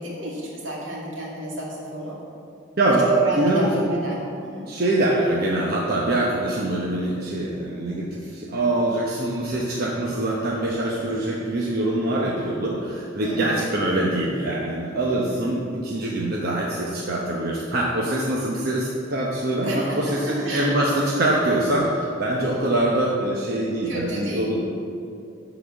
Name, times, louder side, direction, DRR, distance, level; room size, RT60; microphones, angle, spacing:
voice 1, 0.0-2.2 3.1-4.6 13.2-13.5 19.5-20.0 20.4-20.7 23.8-24.7, right 1 dB, 80° right, -4 dB, 2.5 m, -29 dB
voice 2, 3.4-3.9 4.7-24.7, right 1 dB, 50° right, -4 dB, 1.0 m, -24 dB
11.5 x 4.2 x 7.0 m, 2.5 s
head